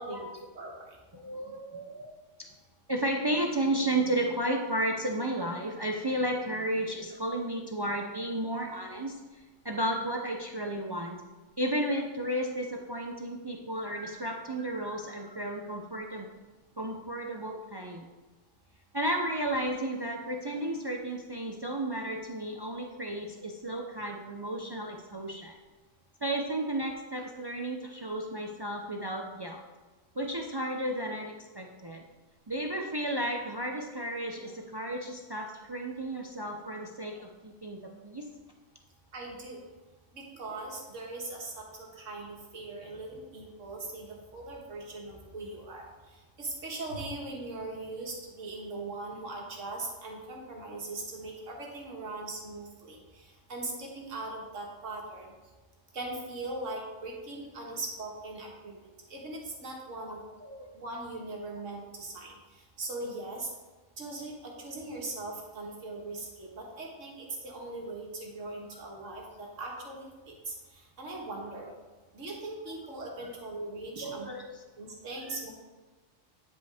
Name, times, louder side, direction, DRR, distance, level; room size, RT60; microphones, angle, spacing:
voice 1, 0.0-1.0 39.1-39.6 40.1-44.1 44.3-45.9 46.4-55.3 55.9-60.2 60.7-62.4 62.8-63.5 64.0-70.6 71.0-71.7 72.1-74.3 74.8-75.5, right 2 dB, 85° right, -1 dB, 1.8 m, -40 dB
voice 2, 1.1-2.5 2.9-11.2 11.6-16.3 16.8-18.1 18.9-25.6 26.2-29.6 30.1-32.0 32.5-38.3 60.0-60.1 60.4-60.8 73.2-73.3 73.9-74.6, right 1 dB, 45° right, 2 dB, 0.3 m, -33 dB
9.4 x 5.3 x 3.4 m, 1.2 s
omnidirectional pair, 1.3 m